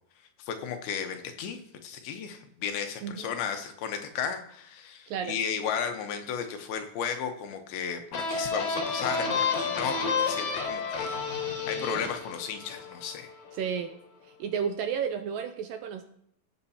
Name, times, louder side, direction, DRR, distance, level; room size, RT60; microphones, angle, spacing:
voice 1, 0.4-13.3, left 7 dB, 80° left, 6 dB, 2.8 m, -34 dB
sound 1, 8.1-13.6, left 5 dB, 60° left, 2.4 m, -31 dB
voice 2, 13.5-13.9 14.2-16.0, right 7 dB, 80° right, 7 dB, 2.1 m, -32 dB
18.0 x 8.1 x 2.8 m, 0.71 s
omnidirectional pair, 4.5 m